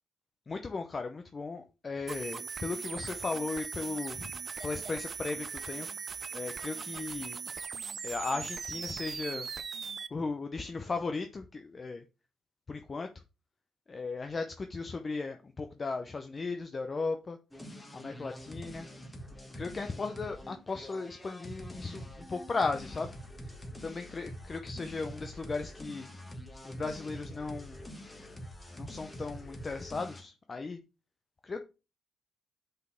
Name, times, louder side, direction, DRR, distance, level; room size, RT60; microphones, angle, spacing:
voice 1, 0.5-4.3 4.6-5.9 6.3-7.4 8.0-9.5 10.1-12.0 12.7-13.1 13.9-17.4 17.9-18.9 19.6-23.1 23.8-26.1 26.6-27.8 28.7-30.8 31.4-31.6, left 3 dB, 35° left, 0.7 m, -36 dB
sound 1, 2.1-10.1, right 6 dB, 45° right, 0.5 m, -39 dB
sound 2, 17.5-30.2, equal, 15° left, 1.6 m, -45 dB
5.3 x 4.2 x 5.7 m
cardioid pair, 90°, 0 cm